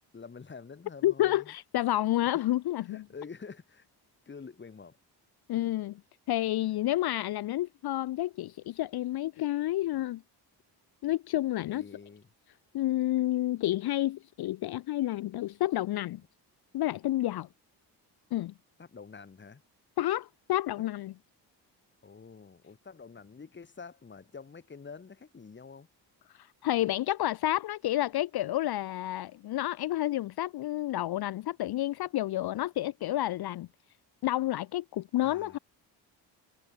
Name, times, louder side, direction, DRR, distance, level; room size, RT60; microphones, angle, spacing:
voice 1, 0.0-1.5 2.8-3.9 4.3-5.0 11.7-12.3 18.8-19.6 22.0-25.9 35.2-35.6, left 5 dB, 25° left, 1.2 m, -47 dB
voice 2, 1.0-3.1 5.5-6.0 6.3-10.2 11.0-11.8 12.7-16.2 16.7-17.5 18.3-18.5 20.0-21.1 26.6-33.7 34.2-35.6, left 14 dB, 60° left, 0.5 m, -30 dB
cardioid pair, 70°, 44 cm